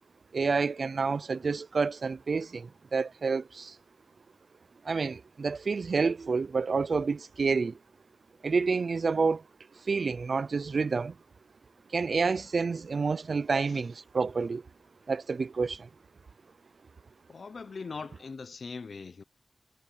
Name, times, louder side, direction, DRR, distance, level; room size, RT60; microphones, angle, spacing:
voice 1, 0.3-3.8 4.8-7.7 8.4-9.4 9.9-11.1 11.9-14.6 15.1-15.9, right 4 dB, 75° right, 0.5 m, -29 dB
voice 2, 17.3-19.2, left 4 dB, 75° left, 0.6 m, -41 dB
wide cardioid pair, 100°, 0 cm